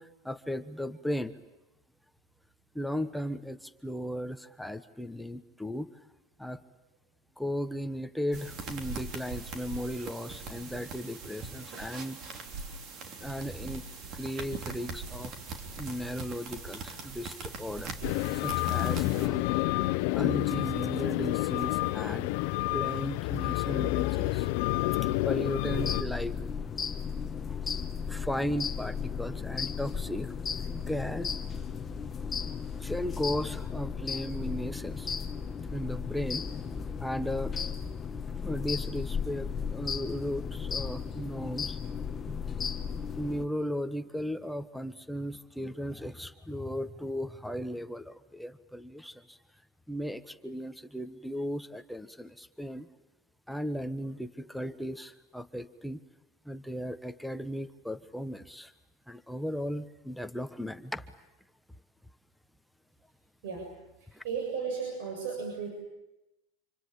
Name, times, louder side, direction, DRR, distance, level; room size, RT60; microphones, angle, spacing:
voice 1, 0.0-1.3 2.7-5.9 6.4-6.6 7.4-12.2 13.2-13.8 14.1-15.3 15.8-17.9 18.3-19.4 20.1-22.3 22.7-24.5 25.2-26.4 27.5-27.6 28.1-30.3 30.7-31.3 32.4-35.1 35.7-36.5 37.0-37.6 38.4-41.8 42.2-42.4 43.2-49.4 49.9-52.9 53.5-56.0 56.4-58.7 59.1-61.1 64.1-64.2, equal, ahead, 10 dB, 1.2 m, -36 dB
sound 1, 8.3-19.3, right 4 dB, 45° right, 3.6 m, -41 dB
sound 2, 18.0-26.0, left 18 dB, 65° left, 1.0 m, -29 dB
sound 3, 25.7-43.5, left 6 dB, 25° left, 1.2 m, -35 dB
voice 2, 64.2-65.7, right 6 dB, 75° right, 2 dB, 7.4 m, -34 dB
27.0 x 25.0 x 8.8 m, 0.96 s
supercardioid pair, 125°, 0 cm